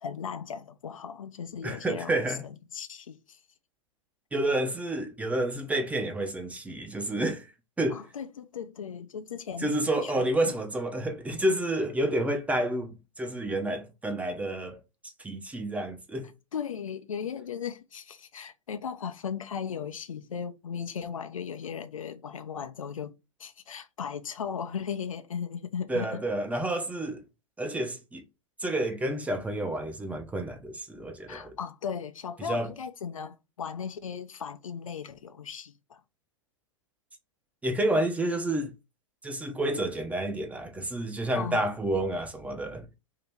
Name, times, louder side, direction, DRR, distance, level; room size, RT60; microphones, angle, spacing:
voice 1, 0.0-2.1 2.4-3.4 7.9-9.8 10.0-10.3 16.5-23.1 23.4-26.2 31.3-36.0 41.3-41.7, left 7 dB, 80° left, 0.5 m, -37 dB
voice 2, 1.6-2.4 4.3-7.5 7.8-8.0 9.6-14.8 15.2-16.3 25.9-27.2 27.6-28.2 28.6-31.5 32.4-32.7 37.6-38.7 39.2-42.9, right 1 dB, 10° right, 0.6 m, -29 dB
2.8 x 2.8 x 3.4 m
hypercardioid pair, 105°, 17 cm